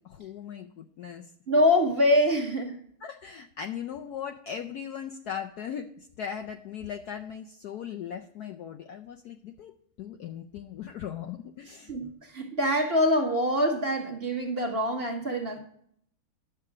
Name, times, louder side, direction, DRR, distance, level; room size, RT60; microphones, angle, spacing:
voice 1, 0.0-1.3 3.0-9.7 10.0-11.9, left 8 dB, 90° left, 0.8 m, -38 dB
voice 2, 1.5-2.8 11.9-15.6, left 1 dB, 35° right, 1.3 m, -25 dB
11.0 x 6.9 x 4.8 m
omnidirectional pair, 2.4 m